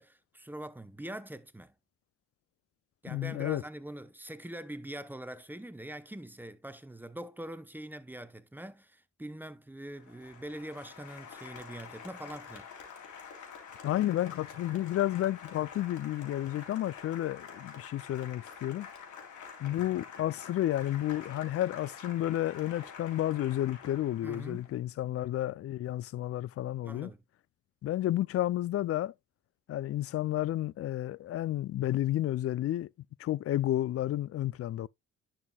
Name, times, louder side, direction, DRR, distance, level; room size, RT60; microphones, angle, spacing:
voice 1, 0.0-1.7 3.0-12.7 24.2-24.6 25.2-25.3 26.8-27.2, right 1 dB, 5° right, 0.9 m, -43 dB
voice 2, 3.1-3.6 13.8-18.9 19.6-27.1 27.8-29.1 29.7-32.9 33.2-34.9, left 13 dB, 50° left, 0.4 m, -31 dB
Applause, 9.9-24.8, left 6 dB, 75° left, 3.6 m, -48 dB
11.0 x 6.0 x 2.3 m
cardioid pair, 90°, 30 cm